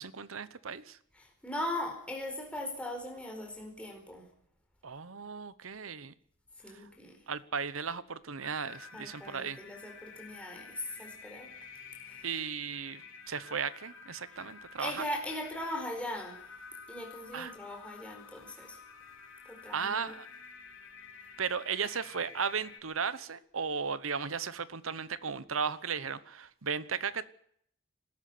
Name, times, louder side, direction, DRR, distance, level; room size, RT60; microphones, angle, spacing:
voice 1, 0.0-1.0 4.8-6.1 6.7-6.9 7.3-9.6 12.2-15.1 17.3-17.5 19.7-20.3 21.4-27.3, right 6 dB, 85° right, 1.0 m, -36 dB
voice 2, 1.2-4.2 6.6-7.2 8.9-11.5 14.8-16.4 16.9-18.8 19.5-20.1, left 1 dB, 5° left, 4.5 m, -39 dB
sound 1, 8.4-22.8, left 5 dB, 75° left, 3.3 m, -51 dB
20.5 x 13.0 x 9.6 m
head